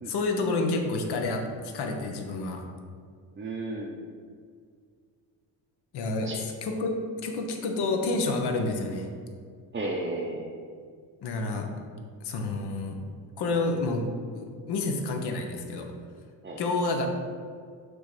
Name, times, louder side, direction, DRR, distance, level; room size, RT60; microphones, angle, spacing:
voice 1, 0.1-2.6 5.9-7.0 7.2-9.1 11.2-11.7 12.2-13.0 13.4-14.1 14.3-15.9 16.6-17.1, left 3 dB, 65° left, 3 dB, 1.0 m, -29 dB
voice 2, 3.4-4.0 6.2-6.4 9.7-10.6 16.4-16.6, right 2 dB, 25° right, -2 dB, 0.7 m, -33 dB
6.5 x 3.1 x 4.8 m, 2.1 s
cardioid pair, 85°, 43 cm